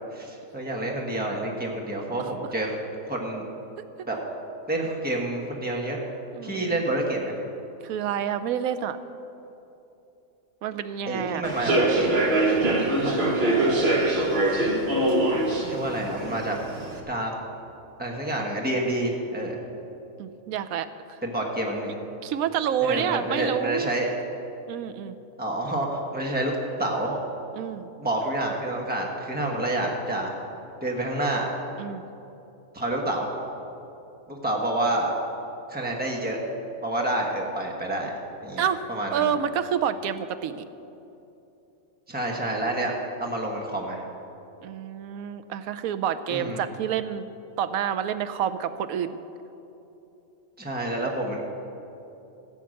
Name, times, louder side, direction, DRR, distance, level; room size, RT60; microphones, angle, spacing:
voice 1, 0.1-2.8 3.1-3.4 4.1-4.2 4.7-6.0 6.4-7.4 11.1-12.2 13.0-13.9 15.6-16.6 17.1-17.3 18.0-19.6 21.2-22.0 22.8-24.1 25.4-26.5 26.8-27.2 28.0-30.3 30.8-31.5 32.7-33.3 34.3-35.1 35.7-36.4 36.8-39.3 42.1-42.9 43.2-44.0 46.3-46.6 50.6-51.4, right 1 dB, 5° right, 0 dB, 1.3 m, -28 dB
voice 2, 6.3-6.9 7.8-9.0 10.6-11.4 20.2-20.9 22.2-23.9 24.7-25.2 27.5-27.9 31.8-32.0 38.6-40.6 44.6-47.3 47.6-49.2, right 8 dB, 80° right, 11 dB, 1.1 m, -28 dB
Human voice / Subway metro underground, 11.4-17.0, right 2 dB, 50° right, 1.4 m, -23 dB
15.5 x 8.1 x 6.5 m, 2.9 s
omnidirectional pair, 1.5 m